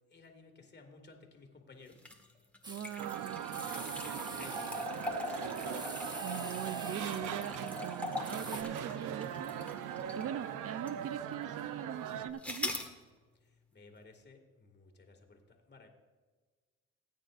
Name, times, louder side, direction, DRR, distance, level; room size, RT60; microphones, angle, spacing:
voice 1, 0.1-2.0 3.6-5.4 13.7-15.9, left 3 dB, 35° left, 4 dB, 2.1 m, -56 dB
sound 1, 1.9-10.4 10.9-11.0 12.4-12.9, left 2 dB, 5° left, 1.7 m, -41 dB
sound 2, 2.6-8.6, right 2 dB, 15° right, 1.1 m, -48 dB
voice 2, 2.7-3.4 6.2-12.7, right 10 dB, 50° right, 14 dB, 0.4 m, -42 dB
sound 3, 3.0-12.3, right 9 dB, 90° right, 0.7 m, -40 dB
19.0 x 9.2 x 2.5 m, 1.4 s
cardioid pair, 90°, 30 cm